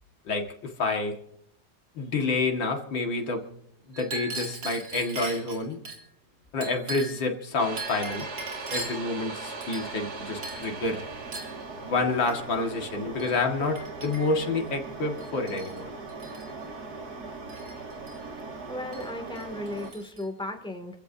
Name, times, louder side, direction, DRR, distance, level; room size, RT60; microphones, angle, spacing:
voice 1, 0.3-1.2 2.0-3.5 4.0-5.8 6.5-8.3 8.7-11.0 11.8-15.9, left 3 dB, 75° left, 2 dB, 2.6 m, -28 dB
Chink clink, 3.9-6.0 6.6-7.3 7.8-9.1 9.6-10.1 10.4-10.7 11.3-11.6 12.3-12.4 13.2-13.3 13.7-14.5 15.2-15.8 16.1-16.5 17.5-18.2 18.9-19.1 19.4-20.2, right 2 dB, 70° right, 4.3 m, -39 dB
sound 1, 7.6-19.9, right 3 dB, 55° right, 2.6 m, -39 dB
voice 2, 18.7-21.0, left 1 dB, 5° left, 4 dB, 2.2 m, -36 dB
29.0 x 15.5 x 2.7 m, 0.74 s
omnidirectional pair, 2.1 m